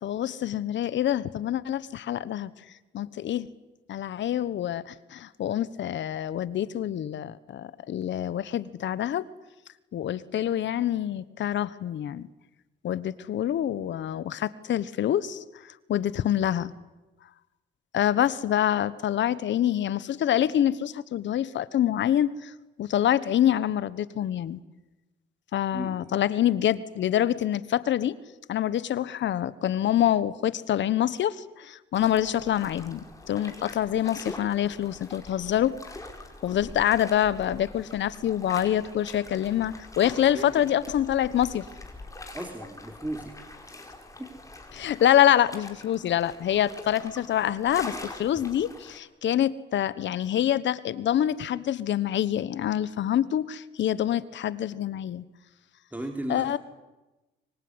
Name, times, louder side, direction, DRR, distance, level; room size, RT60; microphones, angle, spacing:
voice 1, 0.0-2.5 2.9-3.5 3.9-9.3 9.9-12.3 12.8-16.7 17.9-22.5 22.8-24.6 25.5-28.2 28.5-35.8 36.4-41.6 44.7-55.2 56.3-56.6, left 11 dB, 65° left, 17 dB, 1.3 m, -26 dB
voice 2, 25.7-26.0 40.3-40.6 42.3-43.3 43.6-43.9 44.2-44.3 55.9-56.6, right 1 dB, 10° right, 4 dB, 3.7 m, -36 dB
sound 1, 31.9-49.0, left 2 dB, 15° left, 4.6 m, -44 dB
24.0 x 23.0 x 9.8 m, 1.1 s
cardioid pair, 90°, 20 cm